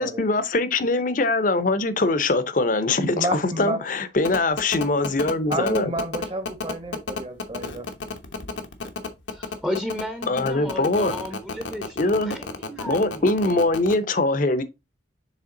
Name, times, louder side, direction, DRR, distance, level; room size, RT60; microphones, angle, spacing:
voice 1, 0.0-5.9 10.3-11.1 12.0-12.4 12.9-14.6, left 2 dB, 45° left, 0.7 m, -22 dB
voice 2, 3.2-3.8 5.5-7.9, right 1 dB, 30° right, 1.1 m, -30 dB
sound 1, 4.2-13.9, left 4 dB, 85° left, 1.1 m, -31 dB
voice 3, 9.3-12.2 12.7-13.3, left 1 dB, 5° right, 0.7 m, -33 dB
7.3 x 3.4 x 3.8 m
head